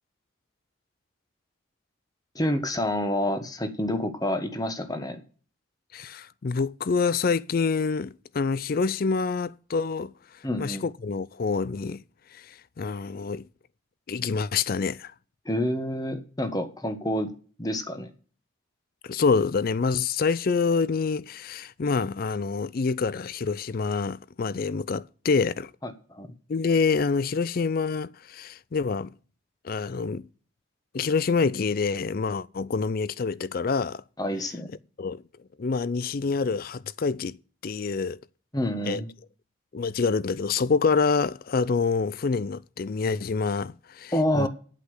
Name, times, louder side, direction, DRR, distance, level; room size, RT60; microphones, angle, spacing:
voice 1, 2.3-5.2 10.4-10.9 15.4-17.3 17.6-18.1 25.8-26.3 34.2-34.7 38.5-39.1 44.1-44.5, left 1 dB, 20° left, 1.2 m, -28 dB
voice 2, 5.9-10.1 10.6-12.0 12.3-13.5 14.1-15.1 19.0-25.7 26.5-29.1 29.6-30.3 30.9-34.0 35.0-35.2 35.6-37.4 37.6-38.2 38.9-39.0 39.7-44.5, left 4 dB, 45° left, 0.4 m, -26 dB
8.3 x 8.2 x 6.5 m
head